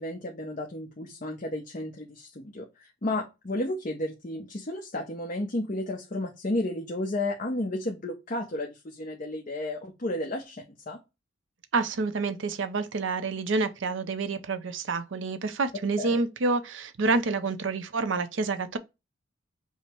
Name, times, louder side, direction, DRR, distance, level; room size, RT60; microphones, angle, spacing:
voice 1, 0.0-11.0 16.0-16.2, left 1 dB, 45° left, 0.8 m, -32 dB
voice 2, 11.7-18.8, right 3 dB, 75° right, 0.6 m, -28 dB
5.5 x 2.1 x 4.4 m
head